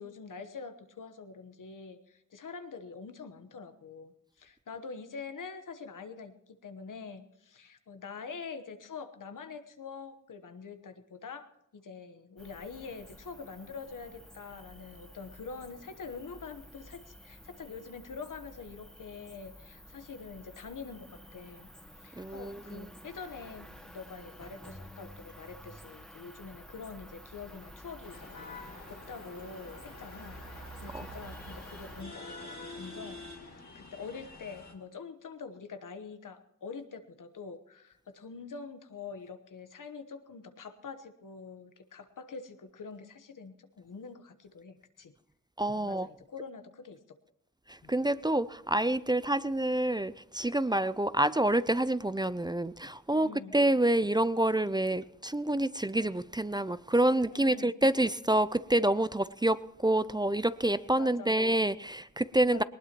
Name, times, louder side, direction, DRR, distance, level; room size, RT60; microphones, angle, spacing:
voice 1, 0.0-21.7 22.0-45.1 45.7-47.2 47.8-47.9 53.1-53.6 57.3-57.7 61.0-61.4 62.5-62.6, left 5 dB, 85° left, 1.1 m, -45 dB
Cricket, 12.4-32.0, equal, ahead, 2.0 m, -51 dB
voice 2, 22.2-22.9 30.9-31.1 45.6-46.1 47.9-62.6, right 1 dB, 15° right, 0.4 m, -28 dB
sound 1, 28.0-34.7, left 3 dB, 65° left, 2.2 m, -47 dB
19.5 x 19.5 x 3.0 m
cardioid pair, 50°, 31 cm